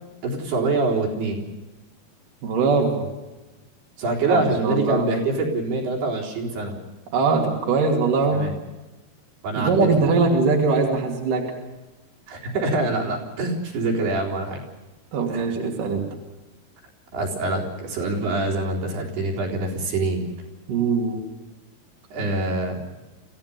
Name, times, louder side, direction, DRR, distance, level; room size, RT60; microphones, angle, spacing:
voice 1, 0.2-1.4 4.0-6.7 8.3-8.5 9.4-9.9 12.3-14.6 15.3-15.4 17.1-20.2 22.1-22.8, right 2 dB, 80° right, -1 dB, 5.8 m, -25 dB
voice 2, 2.4-3.1 4.3-5.1 7.1-8.4 9.6-11.5 15.1-16.1 20.7-21.2, right 4 dB, 55° right, 0 dB, 4.1 m, -21 dB
26.0 x 16.0 x 6.9 m, 1.1 s
omnidirectional pair, 4.6 m